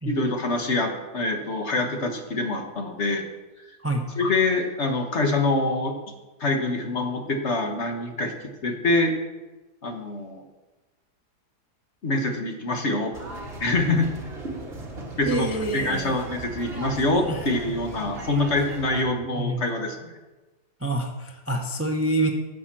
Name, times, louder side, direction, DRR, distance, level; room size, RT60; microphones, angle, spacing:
voice 1, 0.0-3.3 4.2-6.0 6.4-8.3 8.6-9.1 9.8-10.4 12.0-13.1 13.5-14.1 15.2-20.1, left 2 dB, 45° left, 4 dB, 1.5 m, -25 dB
sound 1, 13.1-19.0, right 2 dB, 40° right, 1.9 m, -37 dB
voice 2, 15.3-16.2 17.3-17.4 19.4-19.6 20.8-22.3, right 1 dB, 15° right, 3 dB, 0.5 m, -27 dB
10.0 x 6.4 x 7.5 m, 1.1 s
omnidirectional pair, 1.7 m